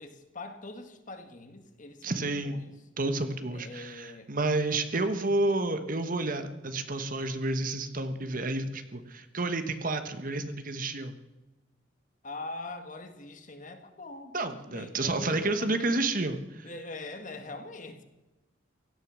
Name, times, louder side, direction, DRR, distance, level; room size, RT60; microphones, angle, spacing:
voice 1, 0.0-2.8 3.5-4.3 12.2-16.1 16.6-18.0, left 2 dB, 40° left, 7 dB, 1.8 m, -43 dB
voice 2, 2.0-2.6 3.0-11.1 14.3-16.7, right 2 dB, 45° right, 9 dB, 1.3 m, -30 dB
17.0 x 13.5 x 6.3 m, 1.0 s
head